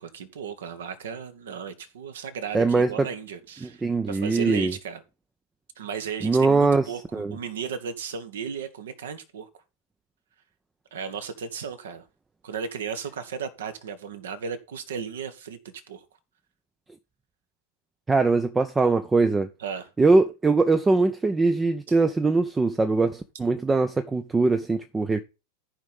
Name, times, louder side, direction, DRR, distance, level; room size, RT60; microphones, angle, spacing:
voice 1, 0.0-5.0 5.8-9.5 10.9-12.1 12.4-16.0 19.6-19.9, right 6 dB, 60° right, 1.3 m, -35 dB
voice 2, 2.5-3.1 3.6-4.7 6.2-7.4 18.1-19.5 20.0-25.2, right 3 dB, 10° right, 0.6 m, -22 dB
14.0 x 5.4 x 3.6 m
figure-of-eight pair, 90°, 0 cm